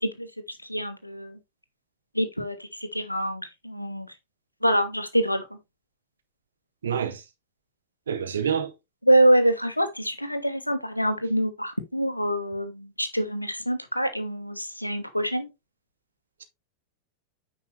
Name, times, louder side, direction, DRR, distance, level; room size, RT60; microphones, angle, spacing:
voice 1, 0.0-1.4 2.1-4.1 4.6-5.6 9.0-15.5, right 1 dB, 90° left, 1.4 m, -25 dB
voice 2, 6.8-7.2 8.1-8.7, right 7 dB, 65° right, 1.7 m, -27 dB
9.6 x 5.5 x 3.3 m
figure-of-eight pair, 90°, 0 cm